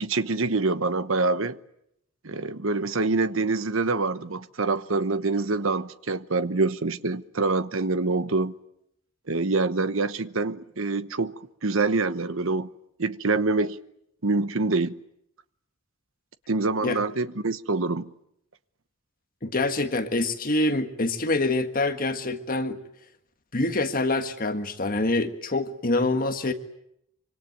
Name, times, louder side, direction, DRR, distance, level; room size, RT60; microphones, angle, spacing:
voice 1, 0.0-1.6 2.2-8.5 9.3-11.3 11.6-12.7 13.0-13.8 14.2-15.0 16.5-18.1, right 3 dB, 65° right, 1.1 m, -25 dB
voice 2, 19.4-22.8 23.5-26.5, left 2 dB, 40° left, 1.6 m, -25 dB
25.5 x 24.5 x 9.3 m
head